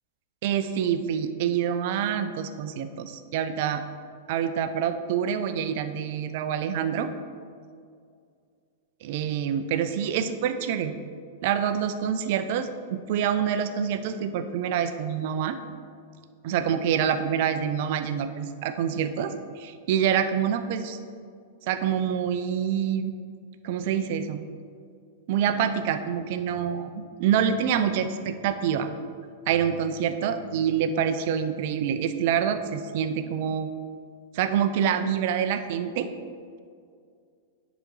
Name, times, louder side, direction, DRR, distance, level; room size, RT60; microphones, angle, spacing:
voice 1, 0.4-3.8 4.3-7.1 9.0-11.0 11.4-15.6 16.4-21.0 21.7-23.1 23.6-24.4 25.3-28.9 29.5-33.7 34.3-36.1, right 8 dB, 55° right, 10 dB, 0.5 m, -26 dB
10.0 x 4.0 x 4.7 m, 2.3 s
hypercardioid pair, 100°, 0 cm